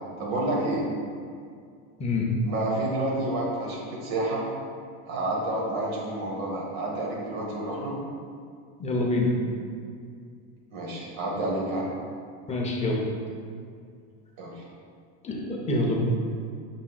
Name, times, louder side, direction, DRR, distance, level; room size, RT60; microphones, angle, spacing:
voice 1, 0.2-0.9 2.4-4.4 5.1-8.0 10.7-11.9 14.4-14.6, right 1 dB, 45° right, -3 dB, 1.4 m, -29 dB
voice 2, 8.8-9.3 12.5-13.0 15.2-16.0, left 2 dB, 15° left, -1 dB, 0.7 m, -26 dB
7.2 x 5.9 x 2.4 m, 2.2 s
supercardioid pair, 145°, 50 cm